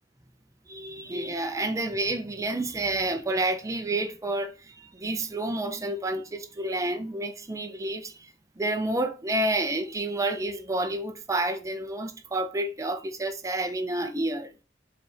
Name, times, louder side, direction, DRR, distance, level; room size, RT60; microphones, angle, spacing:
voice 1, 0.7-14.5, right 2 dB, 20° right, 0.6 m, -29 dB
6.6 x 3.4 x 5.2 m
head